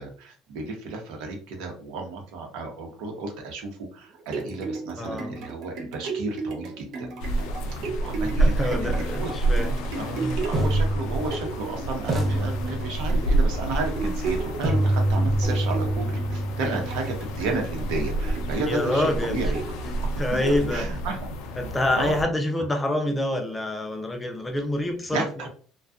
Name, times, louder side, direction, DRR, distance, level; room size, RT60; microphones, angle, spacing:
voice 1, 0.0-7.1 8.0-9.3 9.9-19.6 20.3-20.4 20.7-21.2 21.9-22.1 25.1-25.5, right 3 dB, 85° right, 2 dB, 0.8 m, -32 dB
sound 1, 4.0-21.1 21.7-21.8, right 4 dB, 60° right, 0.5 m, -36 dB
voice 2, 5.0-5.4 8.4-9.7 10.1-10.4 18.7-19.3 20.2-20.9 21.6-25.5, left 1 dB, 10° left, 4 dB, 0.4 m, -27 dB
sound 2, 7.2-22.2, right 2 dB, 85° left, 0.4 m, -28 dB
sound 3, 9.4-9.6 10.5-11.7 12.1-13.3 14.6-18.6, right 1 dB, 30° right, 0.8 m, -27 dB
2.6 x 2.3 x 2.3 m, 0.42 s
cardioid pair, 155°, 0 cm